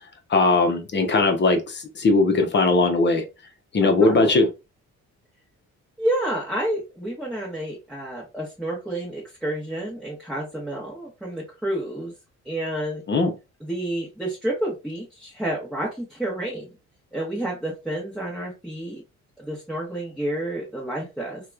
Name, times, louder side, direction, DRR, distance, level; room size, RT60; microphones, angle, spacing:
voice 1, 0.3-3.3 3.7-4.5 13.1-13.3, left 3 dB, 35° left, 0.7 m, -19 dB
voice 2, 3.8-4.4 6.0-12.1 12.4-13.0 13.6-16.7 17.1-19.0 19.4-21.4, right 1 dB, ahead, 1.0 m, -29 dB
2.9 x 2.2 x 2.3 m
cardioid pair, 90°, 30 cm